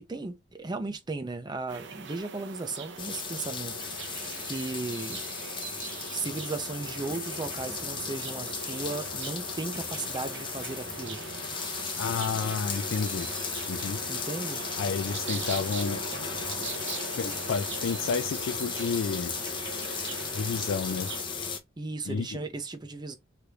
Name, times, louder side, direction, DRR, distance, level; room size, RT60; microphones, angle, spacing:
voice 1, 0.0-5.2 6.1-11.2 14.1-14.6 21.8-23.2, right 3 dB, 20° right, 0.6 m, -36 dB
sound 1, 1.7-21.2, right 5 dB, 65° right, 0.7 m, -41 dB
sound 2, 3.0-21.6, left 5 dB, 25° left, 0.6 m, -36 dB
voice 2, 12.0-13.3 13.7-14.0 14.8-16.1 17.2-19.3 20.3-21.1 22.1-22.4, left 5 dB, 85° left, 0.4 m, -30 dB
3.4 x 2.5 x 2.9 m
head